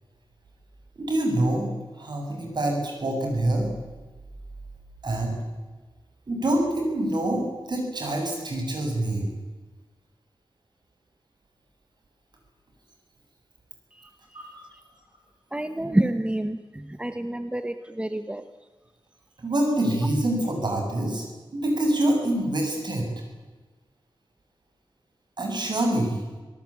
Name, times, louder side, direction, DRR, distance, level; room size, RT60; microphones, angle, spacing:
voice 1, 1.0-1.7 2.0-3.7 5.0-5.3 6.3-9.2 14.3-14.5 19.4-21.3 21.5-23.1 25.4-26.2, right 1 dB, 55° right, 2 dB, 7.6 m, -25 dB
voice 2, 13.9-14.5 15.5-18.5, right 1 dB, 10° right, 9 dB, 1.0 m, -28 dB
26.5 x 17.5 x 8.6 m, 1.3 s
wide cardioid pair, 115°, 9 cm